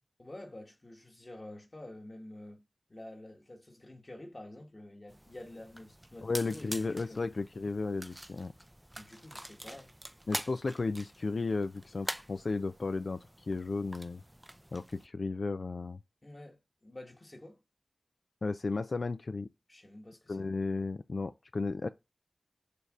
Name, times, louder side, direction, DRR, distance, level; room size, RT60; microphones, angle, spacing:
voice 1, 0.2-2.6 2.9-7.3 8.9-9.9 16.2-17.6 19.7-20.4, left 1 dB, 40° left, 1.5 m, -49 dB
sound 1, 5.1-15.1, right 1 dB, 10° right, 0.4 m, -45 dB
voice 2, 6.2-8.5 10.3-14.2 14.7-16.0 18.4-19.5 20.3-21.9, left 3 dB, 70° left, 0.3 m, -34 dB
6.7 x 3.3 x 4.9 m
cardioid pair, 45°, 0 cm